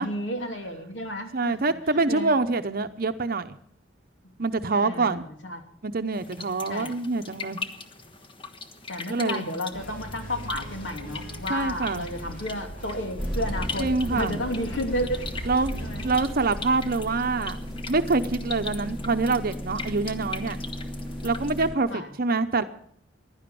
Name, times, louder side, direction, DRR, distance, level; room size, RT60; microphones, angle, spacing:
voice 1, 0.0-1.6 1.9-2.4 4.8-5.6 6.7-6.9 8.9-15.3 15.8-16.1 18.8-19.1 21.9-22.1, equal, 75° left, 4 dB, 2.9 m, -32 dB
voice 2, 1.3-3.6 4.4-5.3 5.8-7.6 9.1-9.6 11.5-12.1 13.8-14.4 15.4-17.6 17.9-20.6 21.2-22.6, right 3 dB, 55° right, 9 dB, 0.8 m, -26 dB
sound 1, 6.1-21.7, left 4 dB, 30° left, 1.2 m, -41 dB
sound 2, 9.7-16.8, right 1 dB, 50° left, 4.3 m, -41 dB
sound 3, 13.2-21.8, equal, ahead, 1.3 m, -35 dB
15.5 x 11.5 x 6.9 m, 0.64 s
head